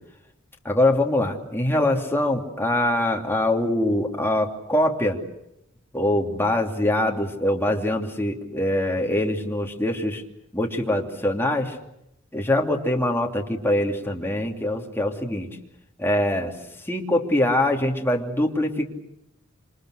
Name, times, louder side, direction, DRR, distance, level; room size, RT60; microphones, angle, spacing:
voice 1, 0.6-5.2 5.9-10.2 10.5-11.8 12.3-15.5 16.0-18.9, left 1 dB, 10° left, 1 dB, 2.9 m, -23 dB
28.0 x 26.5 x 6.5 m, 0.82 s
head